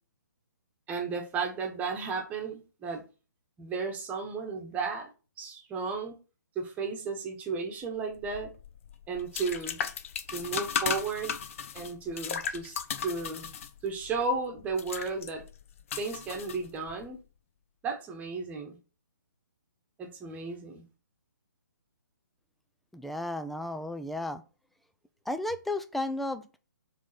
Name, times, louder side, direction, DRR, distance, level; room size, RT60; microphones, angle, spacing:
voice 1, 0.9-3.0 3.6-5.1 5.4-6.2 6.5-8.5 9.1-9.8 10.3-11.3 11.7-13.5 13.8-15.4 16.0-17.2 17.8-18.8 20.0-20.9, right 4 dB, 15° right, 2 dB, 1.3 m, -34 dB
sound 1, 8.2-17.1, left 7 dB, 45° left, 0.8 m, -36 dB
voice 2, 22.9-24.4 25.3-26.6, left 1 dB, ahead, 10 dB, 0.4 m, -33 dB
7.3 x 3.7 x 5.8 m, 0.33 s
figure-of-eight pair, 140°, 10 cm